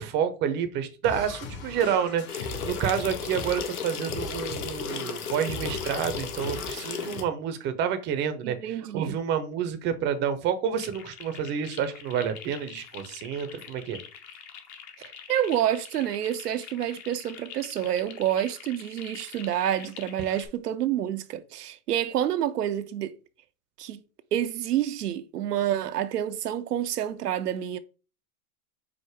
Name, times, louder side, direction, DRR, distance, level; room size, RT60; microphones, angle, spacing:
voice 1, 0.0-14.0, right 8 dB, 25° right, 0.5 m, -29 dB
sound 1, 1.0-7.2, left 3 dB, 60° left, 1.9 m, -39 dB
sound 2, 2.3-7.2, left 7 dB, 80° left, 0.8 m, -35 dB
voice 2, 8.4-9.2 15.0-23.1 23.8-24.0 24.3-27.8, right 11 dB, 85° right, 0.6 m, -28 dB
sound 3, 10.8-20.5, left 8 dB, 45° left, 0.9 m, -45 dB
4.9 x 2.1 x 4.5 m
hypercardioid pair, 105°, 45 cm